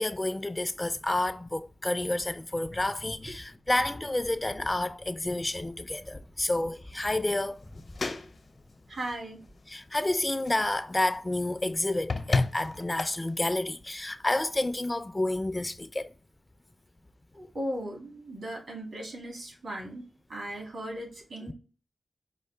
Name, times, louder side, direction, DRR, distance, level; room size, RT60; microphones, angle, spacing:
voice 1, 0.0-7.5 9.7-16.1 21.5-21.6, left 2 dB, 25° left, 0.4 m, -30 dB
sound 1, 7.0-15.1, left 3 dB, 65° left, 0.8 m, -36 dB
voice 2, 8.9-9.4 17.3-20.0 20.3-21.5, right 1 dB, 80° right, 2.1 m, -37 dB
4.7 x 2.5 x 3.3 m
cardioid pair, 55°, 0 cm